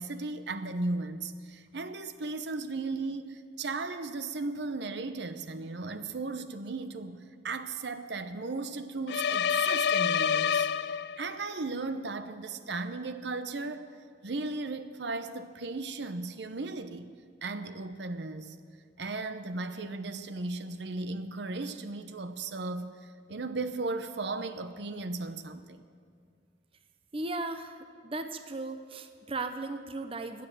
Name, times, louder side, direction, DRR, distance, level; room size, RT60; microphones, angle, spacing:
voice 1, 0.0-14.0 14.2-17.1 17.4-18.6 19.0-25.8, right 3 dB, 65° right, 11 dB, 0.8 m, -36 dB
sound 1, 9.1-11.4, left 7 dB, 60° left, 0.4 m, -27 dB
voice 2, 27.1-27.8 28.0-30.5, right 2 dB, 30° right, 8 dB, 0.7 m, -36 dB
16.0 x 10.0 x 7.8 m, 2.2 s
head